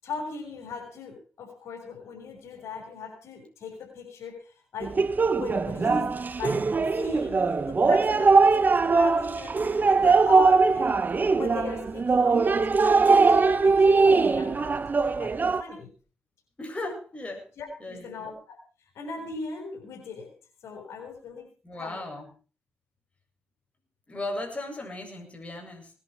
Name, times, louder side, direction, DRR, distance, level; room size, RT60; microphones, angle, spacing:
voice 1, 0.0-5.0 5.4-6.7 6.9-9.6 9.9-14.8 15.2-15.9 17.6-18.6 18.9-20.3 20.6-21.5 21.7-22.0, left 4 dB, 80° left, 2 dB, 6.3 m, -38 dB
sound 1, 4.8-15.6, right 4 dB, 40° right, 1.3 m, -21 dB
voice 2, 16.6-17.5 17.8-18.3 21.6-22.3 24.1-25.9, left 2 dB, 25° left, 2 dB, 7.8 m, -36 dB
20.0 x 11.5 x 4.8 m, 0.37 s
cardioid pair, 65°, 5 cm